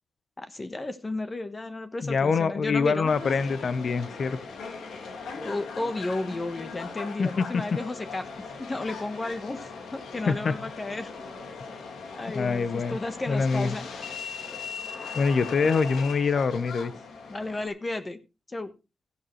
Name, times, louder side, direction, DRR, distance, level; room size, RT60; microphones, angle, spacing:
voice 1, 0.4-3.1 5.3-8.3 8.6-11.1 12.1-13.9 15.6-15.7 17.3-18.2 18.5-18.7, left 2 dB, 30° left, 9 dB, 1.2 m, -33 dB
voice 2, 2.0-4.4 7.2-7.3 10.3-10.5 12.3-13.0 13.3-13.7 15.1-16.9, left 5 dB, 60° left, 13 dB, 1.0 m, -25 dB
Subway metro underground, 3.1-17.7, left 5 dB, 85° left, 2.0 m, -39 dB
14.0 x 10.5 x 3.2 m, 0.28 s
cardioid pair, 70°, 0 cm